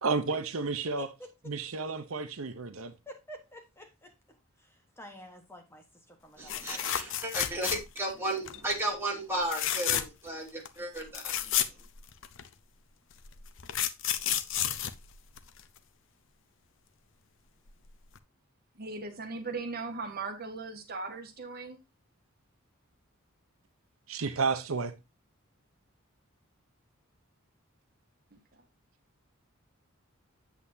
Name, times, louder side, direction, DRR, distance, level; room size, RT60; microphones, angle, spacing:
voice 1, 0.0-1.1 1.4-2.9 24.1-24.9, right 4 dB, 80° right, 0.8 m, -31 dB
voice 2, 3.1-4.1 5.0-5.8 6.2-6.9, equal, 10° left, 1.2 m, -49 dB
voice 3, 6.4-11.7, right 1 dB, 10° right, 2.5 m, -34 dB
sound 1, 6.5-8.1 8.5-8.8 9.4-10.3 10.7-10.8 11.0-12.5 13.2-15.8 17.7-17.9 18.2-18.3, left 10 dB, 60° left, 0.7 m, -31 dB
voice 4, 18.7-21.8 28.3-28.4, right 3 dB, 45° right, 1.5 m, -38 dB
8.3 x 8.1 x 2.7 m
head